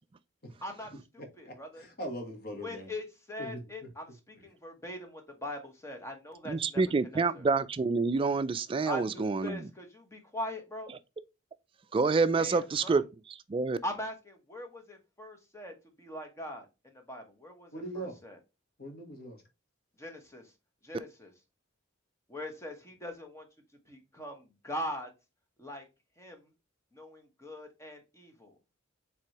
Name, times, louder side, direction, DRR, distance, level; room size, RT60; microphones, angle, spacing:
voice 1, 0.6-1.8 2.6-6.8 7.1-7.5 8.9-10.9 12.4-13.0 13.8-18.4 20.0-20.4 20.8-21.3 22.3-23.4 23.9-25.1 25.6-25.8 26.2-26.5 26.9-28.5, left 1 dB, 15° left, 1.0 m, -41 dB
voice 2, 1.5-2.9 3.4-3.9 17.7-18.2 18.8-19.4, equal, 50° left, 1.3 m, -41 dB
voice 3, 6.5-9.6 11.9-13.8, right 4 dB, 25° right, 0.3 m, -28 dB
4.7 x 3.4 x 2.9 m
head